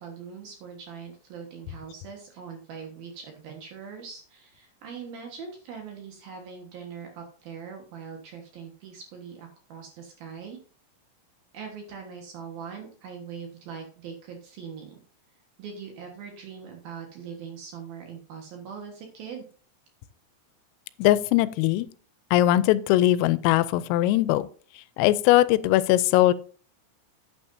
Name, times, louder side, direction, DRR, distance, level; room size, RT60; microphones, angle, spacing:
voice 1, 0.0-10.6 11.5-15.0 15.6-19.5, right 6 dB, 65° right, 2.6 m, -41 dB
voice 2, 21.0-21.9 22.3-24.5 25.0-26.3, left 15 dB, 90° left, 3.3 m, -20 dB
10.5 x 9.2 x 2.7 m
omnidirectional pair, 5.8 m